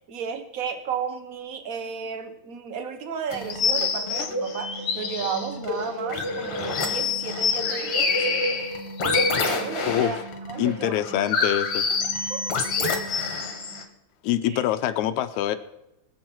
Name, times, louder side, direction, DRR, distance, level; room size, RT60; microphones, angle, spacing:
voice 1, 0.1-8.3 9.0-10.2 10.5-11.0 12.2-13.0 14.5-14.7, right 6 dB, 50° right, 7 dB, 1.0 m, -33 dB
sound 1, 3.3-13.8, left 4 dB, 55° left, 2.5 m, -27 dB
voice 2, 10.6-11.9 14.2-15.6, left 12 dB, 85° left, 9 dB, 2.1 m, -25 dB
24.0 x 8.2 x 4.6 m, 0.90 s
omnidirectional pair, 3.3 m